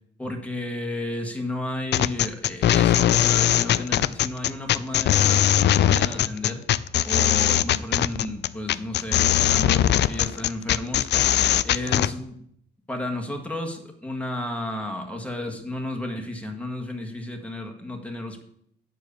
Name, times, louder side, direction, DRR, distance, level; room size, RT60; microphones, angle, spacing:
voice 1, 0.2-6.6 7.0-11.1 11.6-12.4 12.9-18.4, left 1 dB, 5° left, 3 dB, 1.7 m, -33 dB
sound 1, 1.9-12.1, left 12 dB, 60° left, 0.4 m, -20 dB
9.0 x 4.8 x 7.0 m, 0.71 s
cardioid pair, 90°, 20 cm